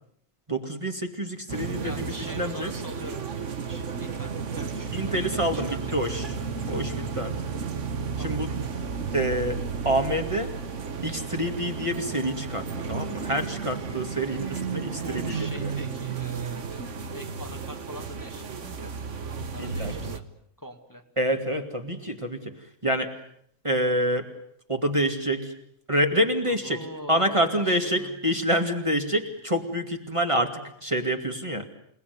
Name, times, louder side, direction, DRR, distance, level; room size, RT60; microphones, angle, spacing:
voice 1, 0.5-2.7 4.9-6.3 6.7-7.4 8.2-8.5 9.1-10.5 11.0-15.7 19.6-19.9 21.2-22.5 22.8-23.1 23.6-24.3 24.7-25.5 25.9-26.8 27.1-31.7, equal, 20° right, 4 dB, 2.5 m, -27 dB
sound 1, 1.5-20.2, right 5 dB, 60° right, 1.6 m, -33 dB
voice 2, 1.7-6.2 8.2-8.4 15.0-19.0 19.3-20.3 20.6-21.0 26.5-28.3, equal, 15° left, 4 dB, 2.2 m, -43 dB
29.0 x 19.0 x 9.5 m, 0.69 s
omnidirectional pair, 1.4 m